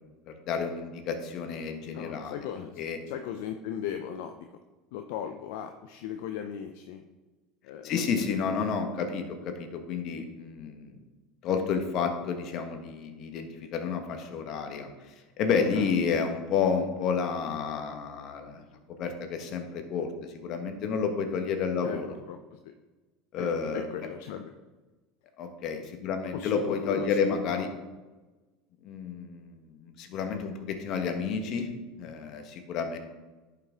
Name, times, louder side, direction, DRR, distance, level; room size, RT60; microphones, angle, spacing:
voice 1, 0.3-2.4 2.8-3.0 7.8-10.9 11.4-14.9 15.4-18.6 19.0-22.2 23.3-23.9 25.4-27.7 28.8-31.7 32.0-33.0, left 6 dB, 55° left, 6 dB, 1.4 m, -30 dB
voice 2, 1.9-4.5 4.9-7.0 7.6-8.7 8.9-9.1 15.7-15.9 21.8-22.0 22.3-22.6 23.4-24.5 26.3-27.9, left 9 dB, 70° left, 6 dB, 0.5 m, -37 dB
10.5 x 5.9 x 3.7 m, 1.2 s
hypercardioid pair, 90°, 0 cm